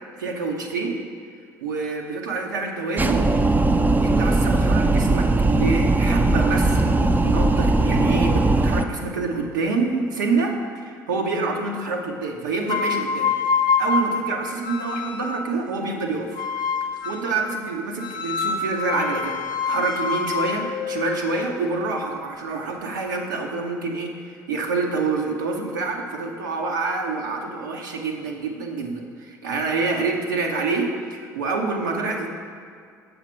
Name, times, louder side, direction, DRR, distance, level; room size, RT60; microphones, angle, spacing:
voice 1, 0.2-1.0 1.6-3.3 4.0-13.3 13.8-16.4 17.0-19.4 19.7-32.3, right 3 dB, 80° right, 2 dB, 0.8 m, -27 dB
sound 1, 3.0-8.8, right 2 dB, 20° right, 0.5 m, -19 dB
sound 2, 12.6-15.5 16.4-17.4 18.0-22.0, left 5 dB, 45° left, 0.6 m, -26 dB
7.3 x 4.9 x 6.2 m, 2.2 s
hypercardioid pair, 60°, 10 cm